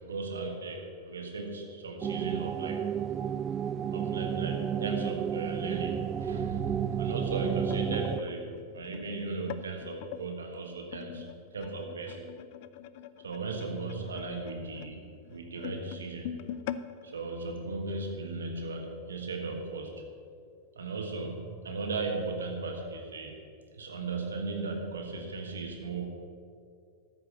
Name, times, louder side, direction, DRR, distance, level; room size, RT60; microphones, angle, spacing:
voice 1, 0.0-2.8 3.9-12.2 13.2-15.0 15.3-16.3 17.0-20.0 20.7-23.4 23.7-26.2, right 3 dB, 70° right, 2 dB, 1.5 m, -36 dB
sound 1, 2.0-8.2, right 8 dB, 25° right, 0.3 m, -32 dB
sound 2, 6.9-10.3 10.9-18.2 18.6-18.8 19.1-19.3 20.1-20.2, left 10 dB, 50° left, 0.5 m, -44 dB
13.5 x 5.7 x 8.0 m, 2.3 s
figure-of-eight pair, 90°, 0 cm